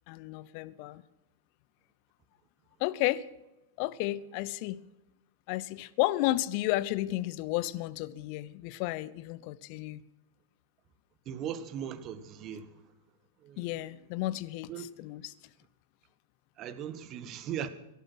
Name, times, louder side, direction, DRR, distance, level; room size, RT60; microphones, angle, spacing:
voice 1, 0.1-1.0 2.8-3.2 3.8-4.8 5.5-10.0 13.6-15.3, left 17 dB, 50° left, 0.7 m, -32 dB
voice 2, 11.3-12.7 13.4-13.7 14.7-14.9 16.6-17.7, right 9 dB, 35° right, 1.4 m, -38 dB
17.0 x 12.0 x 6.3 m
figure-of-eight pair, 95°, 0 cm